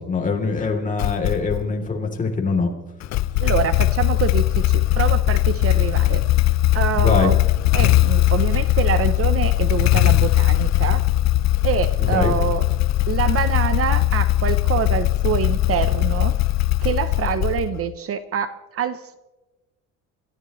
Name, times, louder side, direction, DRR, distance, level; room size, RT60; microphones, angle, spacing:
voice 1, 0.0-2.7 6.9-7.3 12.0-12.3, left 4 dB, 25° left, 1 dB, 3.2 m, -23 dB
Motorcycle / Engine starting, 1.0-1.7 3.0-17.9, left 16 dB, 55° left, 0.5 m, -19 dB
voice 2, 3.4-6.2 6.7-7.4 7.7-11.0 11.6-12.7 13.1-16.3 16.8-19.2, right 8 dB, 45° right, 12 dB, 0.8 m, -25 dB
27.5 x 14.5 x 3.1 m, 1.1 s
cardioid pair, 135°, 32 cm